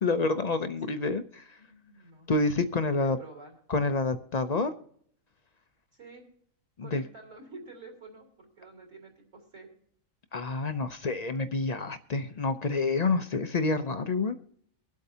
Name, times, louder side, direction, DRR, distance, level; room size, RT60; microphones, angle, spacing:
voice 1, 0.0-1.6 2.3-3.2 3.7-4.7 6.8-7.0 10.3-14.4, left 3 dB, 50° left, 10 dB, 0.5 m, -28 dB
voice 2, 1.6-2.4 2.9-3.6 5.9-6.2 6.8-9.7, right 3 dB, 65° right, 0 dB, 3.9 m, -49 dB
24.5 x 8.2 x 2.7 m, 0.64 s
omnidirectional pair, 1.4 m